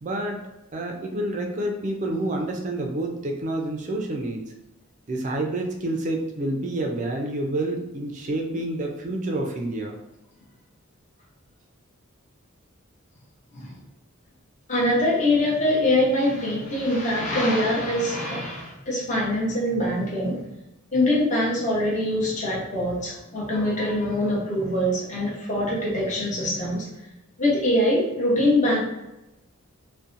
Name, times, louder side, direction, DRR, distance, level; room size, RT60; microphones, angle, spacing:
voice 1, 0.0-0.4 0.7-4.5 5.1-10.0, right 1 dB, 35° right, 2 dB, 0.3 m, -28 dB
voice 2, 14.7-20.4 20.9-26.9 27.4-28.8, left 1 dB, 35° left, -5 dB, 0.7 m, -23 dB
2.6 x 2.1 x 2.5 m, 0.94 s
head